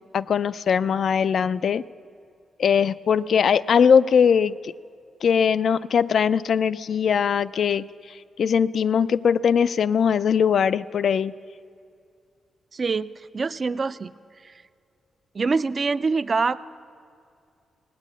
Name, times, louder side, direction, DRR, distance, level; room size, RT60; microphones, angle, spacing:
voice 1, 0.1-1.8 2.6-4.7 5.2-11.3, left 7 dB, 60° left, 16 dB, 0.3 m, -21 dB
voice 2, 12.7-13.1 13.3-14.1 14.4-14.5 15.3-16.6, right 4 dB, 35° right, 15 dB, 0.4 m, -24 dB
18.0 x 9.0 x 8.3 m, 2.4 s
wide cardioid pair, 135°, 0 cm